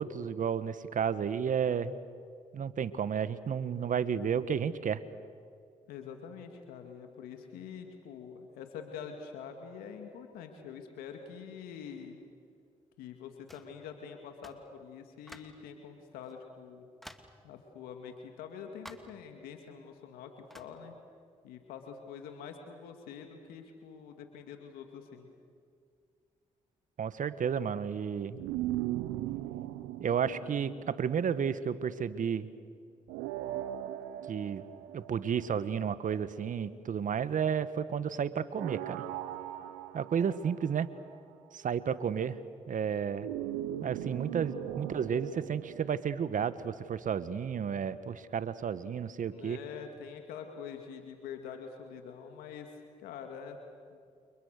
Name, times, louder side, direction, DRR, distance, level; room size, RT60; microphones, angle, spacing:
voice 1, 0.0-2.0 2.5-5.0 27.0-28.4 30.0-32.5 34.3-34.6 34.9-39.1 39.9-40.9 41.5-42.4 42.7-43.3 43.8-49.6, right 7 dB, 60° right, 14 dB, 1.5 m, -32 dB
voice 2, 5.9-12.2 13.0-16.8 17.4-20.9 21.4-25.3 49.3-53.6 53.9-54.0, left 7 dB, 85° left, 5 dB, 2.3 m, -45 dB
sound 1, 13.5-13.8 14.4-14.7 15.3-15.6 16.3-16.4 17.0-17.4 18.8-19.2 20.5-20.8, equal, ahead, 2.8 m, -51 dB
sound 2, 28.4-31.7 33.1-35.9 38.5-41.2 43.2-46.0, right 13 dB, 90° right, 0.9 m, -39 dB
30.0 x 29.5 x 6.7 m, 2.2 s
hypercardioid pair, 45°, 15 cm